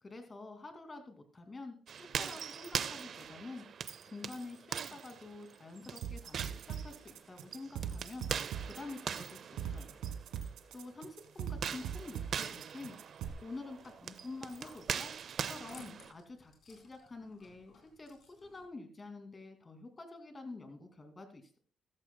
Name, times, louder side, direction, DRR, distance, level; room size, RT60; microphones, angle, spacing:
voice 1, 0.0-3.6 4.0-8.3 8.6-10.0 10.4-13.0 13.4-15.1 15.4-21.6, left 3 dB, 30° left, 6 dB, 2.4 m, -48 dB
sound 1, 1.9-10.5 11.5-16.1, right 7 dB, 55° right, 0.5 m, -41 dB
sound 2, 6.0-13.3, right 8 dB, 90° right, 1.3 m, -41 dB
sound 3, 13.5-18.7, left 4 dB, 60° left, 4.1 m, -60 dB
14.5 x 13.5 x 2.2 m, 0.43 s
cardioid pair, 90°, 0 cm